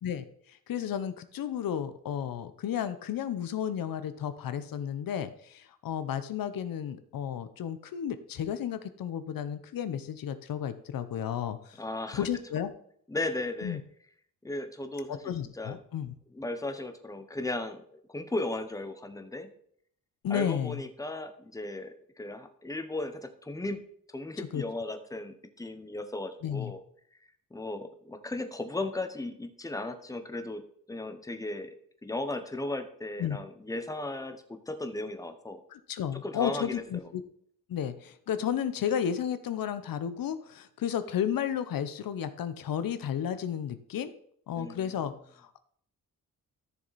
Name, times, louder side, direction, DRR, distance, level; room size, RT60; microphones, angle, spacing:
voice 1, 0.0-11.8 12.1-12.7 13.6-13.8 15.1-16.1 20.2-20.8 24.5-24.6 26.4-26.7 33.2-33.4 35.7-37.2 37.7-44.1 44.5-45.6, left 9 dB, 85° left, 11 dB, 0.8 m, -33 dB
voice 2, 11.8-12.3 13.1-13.8 14.4-15.8 16.3-19.5 20.3-23.8 24.1-26.8 27.5-31.8 32.0-35.6 36.1-37.0 44.5-45.0, left 2 dB, 10° left, 8 dB, 1.0 m, -36 dB
13.5 x 6.8 x 4.1 m, 0.65 s
wide cardioid pair, 115°, 33 cm